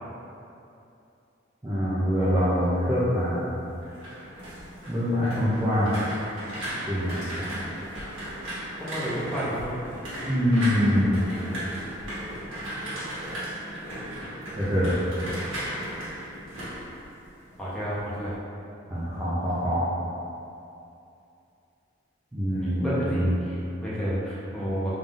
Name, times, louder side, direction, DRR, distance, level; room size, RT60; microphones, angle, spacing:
voice 1, 1.6-3.5 4.9-5.9 6.9-7.1 10.3-11.2 14.6-14.9 18.9-19.8 22.3-23.3, equal, 15° right, -11 dB, 0.5 m, -24 dB
sound 1, 3.7-17.7 18.0-18.4, right 1 dB, 85° right, 1.4 m, -36 dB
voice 2, 8.7-9.7 17.6-18.4 22.6-24.9, equal, 5° left, -10 dB, 0.8 m, -31 dB
3.6 x 3.6 x 2.5 m, 2.7 s
head